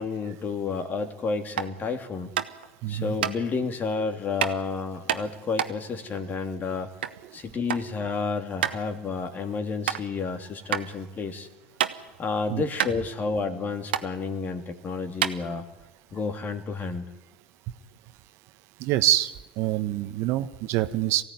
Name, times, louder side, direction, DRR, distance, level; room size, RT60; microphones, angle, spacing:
voice 1, 0.0-2.3 2.9-6.9 7.3-11.5 12.2-15.6 16.1-17.1, left 4 dB, 30° left, 6 dB, 2.9 m, -30 dB
sound 1, 1.5-1.8 2.4-2.7 3.2-3.3 4.4-4.6 5.1-7.2 7.5-7.9 8.2-8.3 8.6-8.8 9.3-9.4 9.8-10.0 10.7-10.8 11.3-12.2 12.5-12.6 12.8-13.6 13.9-14.1 14.7-14.8 15.1-15.9, right 10 dB, 75° right, 1.3 m, -28 dB
voice 2, 2.8-3.2 7.2-7.4 10.8-10.9 12.5-12.6 18.8-21.2, right 14 dB, 55° right, 11 dB, 1.2 m, -26 dB
23.0 x 16.0 x 9.7 m, 1.1 s
figure-of-eight pair, 75°, 6 cm